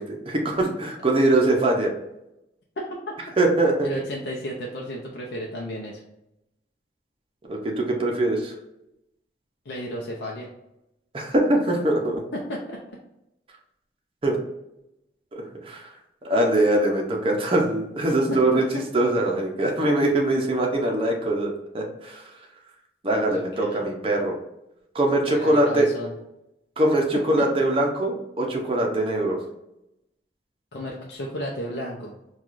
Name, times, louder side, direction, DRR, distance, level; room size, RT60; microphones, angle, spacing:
voice 1, 0.0-1.9 3.4-4.0 7.5-8.5 11.1-12.2 14.2-14.4 15.3-15.9 16.2-18.6 18.9-22.3 23.0-24.4 24.9-25.9 26.8-29.4, right 1 dB, 30° right, 0 dB, 0.6 m, -22 dB
voice 2, 2.8-3.1 3.8-6.0 9.7-10.5 12.5-12.8 18.3-18.8 23.3-23.8 25.3-26.1 27.4-27.5 30.7-32.1, equal, 65° left, -2 dB, 0.6 m, -33 dB
4.6 x 2.3 x 2.5 m, 0.87 s
head